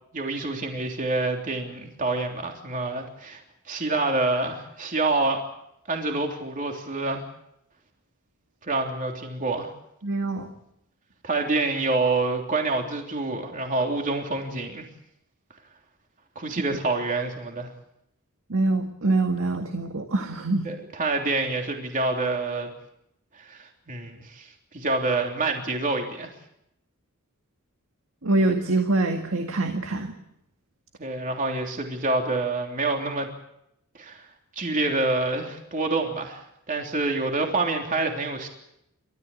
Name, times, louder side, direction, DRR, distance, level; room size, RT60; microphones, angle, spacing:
voice 1, 0.1-3.4 3.7-5.4 5.9-7.2 8.6-9.7 11.2-14.9 16.3-17.7 20.6-22.7 23.3-24.5 24.7-26.3 31.0-33.3 34.0-34.2 34.5-38.5, right 3 dB, 35° right, 2 dB, 3.3 m, -27 dB
voice 2, 10.0-10.5 18.5-20.7 28.2-30.1, right 2 dB, 60° right, 5 dB, 1.9 m, -24 dB
30.0 x 14.0 x 8.6 m, 0.79 s
head